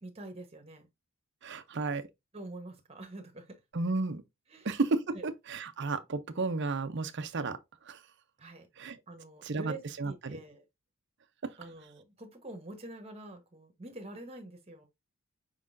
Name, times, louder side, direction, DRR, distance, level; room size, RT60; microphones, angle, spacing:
voice 1, 0.0-0.9 2.3-3.6 4.5-4.7 5.1-5.3 8.4-8.7 9.1-10.6 11.6-14.9, right 2 dB, 25° right, 1.1 m, -46 dB
voice 2, 1.4-2.0 3.7-4.2 4.6-7.6 7.9-8.0 8.8-9.0 9.4-10.4 11.4-11.5, right 3 dB, 55° right, 0.6 m, -33 dB
5.4 x 3.7 x 2.5 m
head